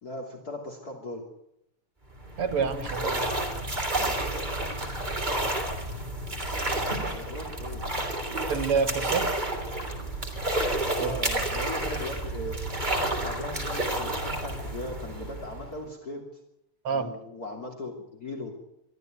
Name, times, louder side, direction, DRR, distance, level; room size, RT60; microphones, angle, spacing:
voice 1, 0.0-1.3 7.1-8.0 11.0-12.6 13.2-16.2 16.9-18.6, left 2 dB, 40° left, 1 dB, 3.5 m, -38 dB
sound 1, 2.1-15.9, right 1 dB, 20° right, 3.4 m, -30 dB
voice 2, 2.4-3.3 8.5-9.3 11.0-11.1 12.8-13.0 16.8-17.1, right 5 dB, 85° right, 9 dB, 3.0 m, -28 dB
23.5 x 13.5 x 9.4 m, 0.79 s
omnidirectional pair, 2.4 m